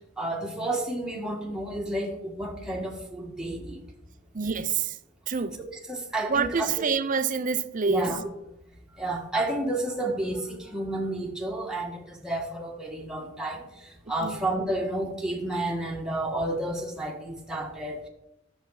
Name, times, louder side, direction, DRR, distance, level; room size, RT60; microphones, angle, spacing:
voice 1, 0.2-3.8 5.9-6.8 7.9-8.2 8.9-18.1, right 1 dB, 5° right, 1.5 m, -31 dB
voice 2, 4.3-5.0 5.3-5.6 6.3-8.1 14.2-14.4, right 5 dB, 45° right, 0.6 m, -27 dB
11.5 x 7.1 x 4.8 m
head